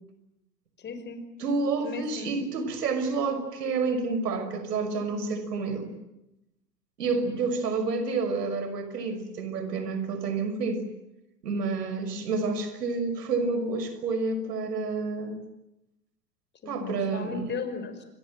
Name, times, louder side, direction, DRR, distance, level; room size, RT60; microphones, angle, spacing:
voice 1, 0.8-1.2 1.8-2.4 16.6-18.0, left 5 dB, 20° left, 8 dB, 5.5 m, -36 dB
voice 2, 1.4-5.9 7.0-10.8 11.4-15.4 16.7-17.5, right 4 dB, 70° right, 10 dB, 6.1 m, -29 dB
29.5 x 24.5 x 7.8 m, 0.89 s
hypercardioid pair, 110°, 49 cm